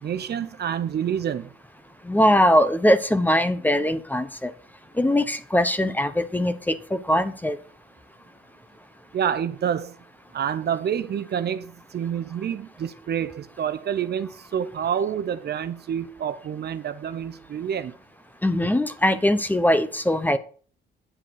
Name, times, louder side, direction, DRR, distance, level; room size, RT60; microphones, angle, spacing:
voice 1, 0.0-1.5 9.1-10.0 10.3-17.9, right 8 dB, 55° right, 0.8 m, -28 dB
voice 2, 2.0-4.5 5.0-7.6 18.4-20.4, equal, 10° left, 1.0 m, -21 dB
10.0 x 7.5 x 4.7 m
cardioid pair, 90°, 20 cm